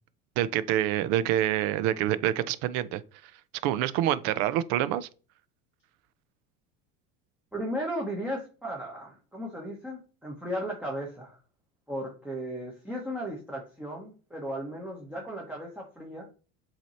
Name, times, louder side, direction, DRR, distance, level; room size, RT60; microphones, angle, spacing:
voice 1, 0.4-3.0 3.6-5.1, right 12 dB, 65° right, 0.6 m, -26 dB
voice 2, 7.5-11.4 11.9-16.3, equal, 5° right, 1.0 m, -35 dB
7.7 x 2.9 x 4.3 m
cardioid pair, 145°, 29 cm